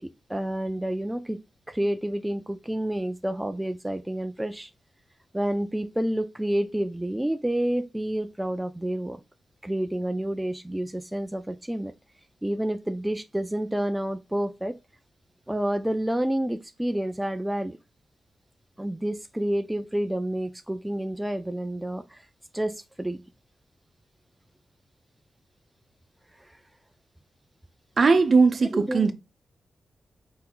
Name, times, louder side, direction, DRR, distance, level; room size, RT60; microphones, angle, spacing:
voice 1, 0.0-1.4 1.7-4.7 5.3-9.2 9.6-11.9 12.4-14.8 15.5-17.8 18.8-22.2 22.5-23.2 26.4-26.6 28.7-29.1, right 1 dB, 10° right, 0.4 m, -29 dB
voice 2, 28.0-29.1, right 4 dB, 55° right, 0.7 m, -19 dB
4.4 x 3.6 x 2.2 m
cardioid pair, 60°, 0 cm